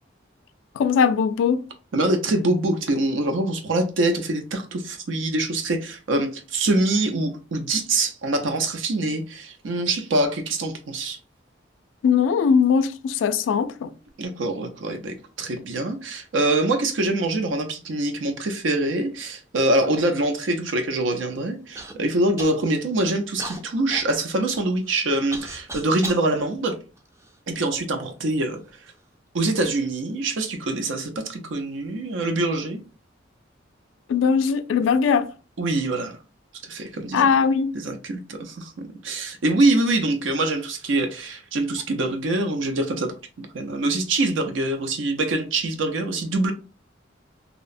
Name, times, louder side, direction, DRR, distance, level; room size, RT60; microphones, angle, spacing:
voice 1, 0.8-1.6 12.0-13.9 34.1-35.3 37.1-37.7, left 6 dB, 85° left, 0.3 m, -20 dB
voice 2, 1.9-11.2 14.2-26.8 27.5-28.6 29.3-32.8 35.6-36.2 36.7-37.3 37.7-46.5, right 2 dB, 90° right, 0.5 m, -24 dB
Human voice / Cough, 21.8-21.9 22.4-22.9 23.4-26.3 27.0-27.8 28.6-28.7 29.4-29.7, right 2 dB, 15° right, 0.3 m, -37 dB
2.8 x 2.0 x 2.4 m
head